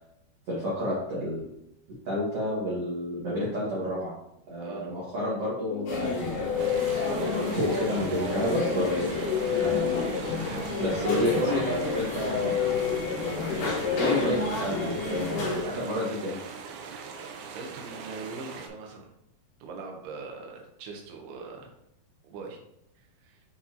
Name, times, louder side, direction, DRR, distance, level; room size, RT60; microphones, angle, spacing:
voice 1, 0.5-1.5 2.1-4.1 4.5-6.7 7.1-12.6 13.2-13.4 14.0-16.4, equal, 50° right, -7 dB, 1.9 m, -30 dB
voice 2, 4.6-4.9 9.2-9.3 10.4-11.8 13.4-13.8 17.4-19.1 19.6-21.7 22.2-22.6 23.2-23.4, right 4 dB, 75° right, 1 dB, 2.9 m, -41 dB
Guitar, 5.3-7.9 8.6-14.1, left 9 dB, 85° left, 2.2 m, -32 dB
sound 1, 5.9-15.6, left 3 dB, 55° left, 2.8 m, -31 dB
sound 2, 6.6-18.7, right 5 dB, 90° right, 3.1 m, -41 dB
8.0 x 4.8 x 2.9 m, 0.81 s
omnidirectional pair, 5.0 m